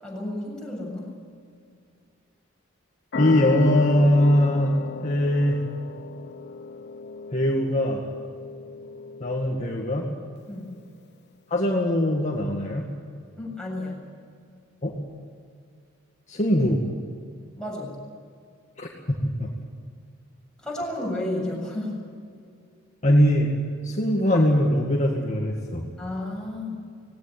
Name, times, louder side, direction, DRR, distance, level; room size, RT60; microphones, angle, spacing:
voice 1, 0.0-1.1 10.5-10.7 13.4-14.0 17.6-18.0 20.6-22.0 26.0-26.9, left 1 dB, 5° left, -3 dB, 7.4 m, -32 dB
sound 1, 3.1-10.3, left 4 dB, 55° left, 0.8 m, -35 dB
voice 2, 3.2-4.8 5.0-5.6 7.3-8.0 9.2-10.1 11.5-12.9 14.8-14.9 16.3-16.8 18.8-19.5 23.0-23.5 23.8-25.8, left 1 dB, 35° left, -1 dB, 2.1 m, -21 dB
19.0 x 17.5 x 8.8 m, 2.3 s
head